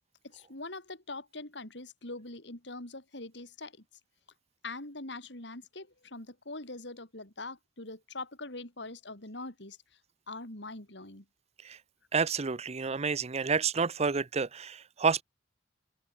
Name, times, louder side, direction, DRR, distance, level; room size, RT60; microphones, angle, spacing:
voice 1, 0.2-3.8 4.6-9.8 10.3-11.2, left 2 dB, 70° left, 5.6 m, -43 dB
voice 2, 12.1-15.2, right 5 dB, 35° right, 0.7 m, -29 dB
open air
head